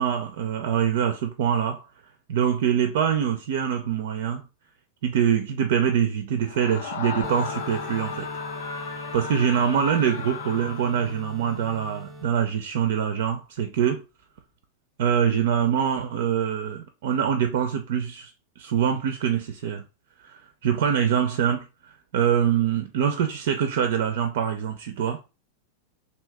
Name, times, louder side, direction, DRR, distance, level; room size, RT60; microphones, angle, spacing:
voice 1, 0.0-1.8 2.3-4.4 5.0-8.3 8.8-14.0 15.0-19.8 20.2-25.2, right 8 dB, 55° right, 0.4 m, -24 dB
Screaming, 6.5-11.3, left 5 dB, 60° left, 0.5 m, -35 dB
sound 1, 7.2-12.2, left 1 dB, 10° right, 0.6 m, -40 dB
2.7 x 2.6 x 3.3 m
figure-of-eight pair, 90°, 0 cm